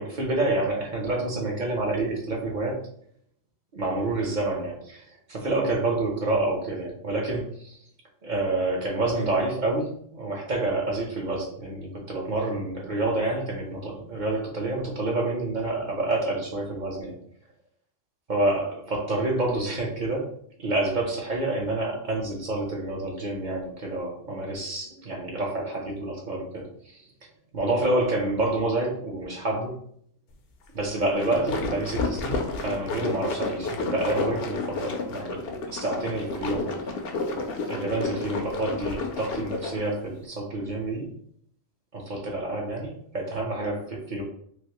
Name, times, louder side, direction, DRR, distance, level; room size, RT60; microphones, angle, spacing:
voice 1, 0.0-2.9 3.7-7.8 8.2-17.2 18.3-20.3 20.6-26.7 27.5-29.8 30.7-35.4 35.7-36.7 37.7-41.1 41.9-44.2, right 2 dB, 45° right, -1 dB, 0.7 m, -28 dB
sound 1, 31.0-39.9, left 3 dB, 65° left, 0.7 m, -31 dB
3.1 x 2.6 x 2.8 m, 0.64 s
omnidirectional pair, 1.3 m